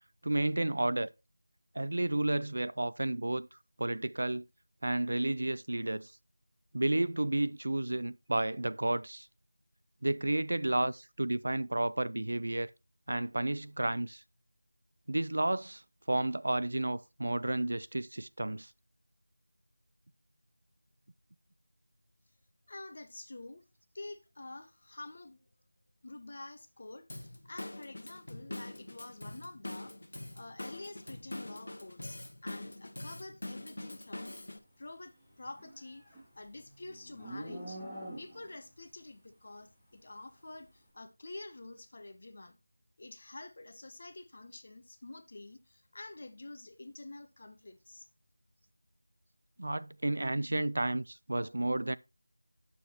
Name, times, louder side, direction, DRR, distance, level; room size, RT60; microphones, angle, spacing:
voice 1, 0.2-1.1 1.7-3.5 3.8-4.5 4.8-6.1 6.7-9.3 10.0-12.7 13.1-14.2 15.1-15.8 16.1-18.7 49.6-52.0, right 1 dB, 55° right, 0.3 m, -31 dB
voice 2, 22.7-23.6 23.9-25.4 26.0-30.0 30.3-34.3 34.8-36.0 36.3-37.8 38.2-42.6 43.0-48.1, left 2 dB, 35° left, 0.9 m, -48 dB
Drum kit / Drum, 27.1-34.6, left 1 dB, 65° left, 1.1 m, -44 dB
Livestock farm animals working animals, 35.4-38.6, right 1 dB, ahead, 1.6 m, -45 dB
8.2 x 6.9 x 2.9 m
figure-of-eight pair, 175°, 0 cm